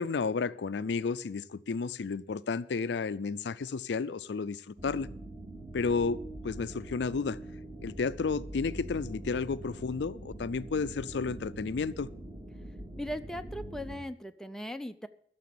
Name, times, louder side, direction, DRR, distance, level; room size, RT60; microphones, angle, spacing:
voice 1, 0.0-5.1 5.7-6.2 6.4-7.4 7.8-12.1, left 4 dB, 70° left, 0.4 m, -32 dB
sound 1, 4.8-14.0, right 1 dB, 20° right, 2.5 m, -43 dB
voice 2, 13.0-15.1, equal, 5° left, 0.5 m, -38 dB
13.5 x 6.9 x 8.5 m
head